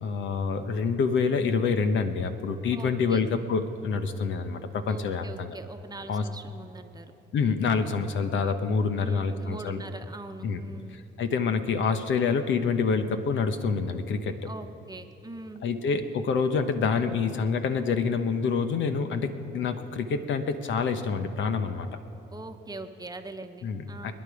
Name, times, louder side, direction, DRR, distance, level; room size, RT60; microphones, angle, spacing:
voice 1, 0.0-5.6 6.1-6.2 7.3-9.8 10.4-10.6 11.2-14.4 15.6-21.9 23.6-24.1, left 5 dB, 75° left, 8 dB, 1.1 m, -27 dB
voice 2, 2.7-3.2 4.9-7.1 9.0-11.0 14.5-15.6 22.3-24.1, right 2 dB, 20° right, 6 dB, 1.1 m, -42 dB
28.0 x 10.0 x 5.0 m, 2.8 s
cardioid pair, 90°, 20 cm